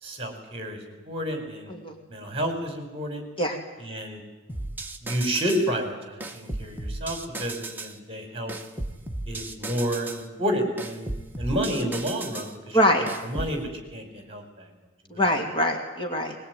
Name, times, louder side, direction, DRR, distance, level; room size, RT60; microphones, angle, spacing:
voice 1, 0.0-1.7 2.1-3.3 3.8-4.2 5.0-8.6 9.3-11.1 11.4-12.8 13.2-14.6 15.1-15.2, equal, 30° right, 6 dB, 4.9 m, -30 dB
sound 1, 4.5-5.7 6.2-8.0 8.5-10.3 10.8-12.5 13.1-13.6, right 2 dB, 10° right, 1.7 m, -35 dB
voice 2, 12.7-13.0 15.1-16.3, equal, 25° left, 3 dB, 2.8 m, -23 dB
21.5 x 21.5 x 9.4 m, 1.1 s
head